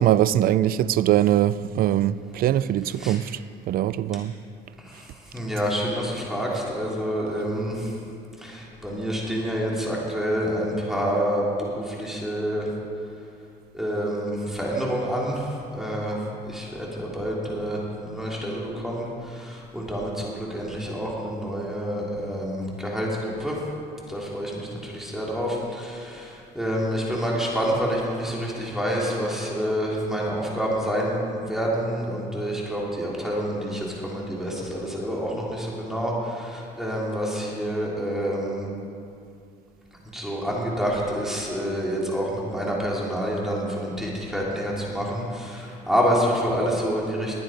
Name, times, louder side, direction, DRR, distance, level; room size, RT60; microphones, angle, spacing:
voice 1, 0.0-3.4 3.7-4.3, right 12 dB, 60° right, 0.4 m, -22 dB
voice 2, 4.8-8.0 8.4-12.7 13.7-23.6 24.1-38.7 40.1-47.4, equal, ahead, 3.4 m, -28 dB
20.0 x 9.3 x 5.1 m
cardioid pair, 110°, 17 cm